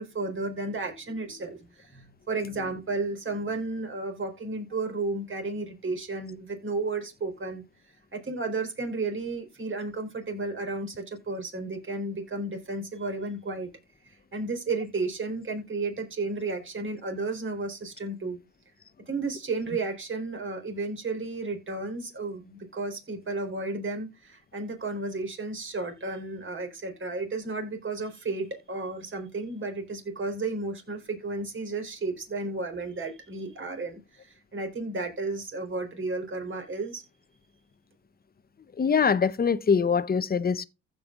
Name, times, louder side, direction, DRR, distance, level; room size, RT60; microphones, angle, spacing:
voice 1, 0.0-7.6 8.1-13.7 14.1-18.4 19.1-37.0, right 3 dB, 40° right, 4.1 m, -33 dB
voice 2, 38.8-40.6, left 6 dB, 30° left, 0.8 m, -23 dB
15.0 x 5.5 x 2.4 m
cardioid pair, 85°, 31 cm